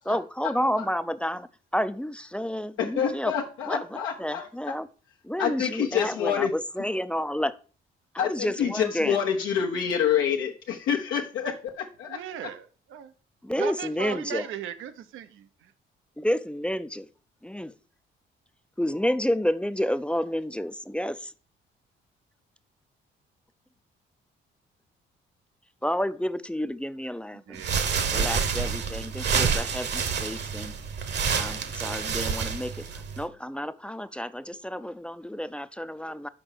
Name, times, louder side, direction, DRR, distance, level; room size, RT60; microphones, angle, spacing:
voice 1, 0.1-3.3 3.6-4.9 5.2-7.6 8.2-9.2 13.4-14.5 16.2-17.1 17.4-17.7 18.8-21.3 25.8-27.6 28.1-30.7 31.3-36.3, equal, 5° left, 0.4 m, -30 dB
voice 2, 2.8-4.7 5.4-6.5 8.2-12.2, left 8 dB, 90° left, 1.0 m, -27 dB
voice 3, 12.1-13.1 13.6-15.5 27.5-28.0, right 8 dB, 85° right, 0.8 m, -37 dB
sound 1, 27.5-33.2, right 6 dB, 60° right, 1.2 m, -28 dB
6.1 x 4.9 x 6.5 m
cardioid pair, 90°, 20 cm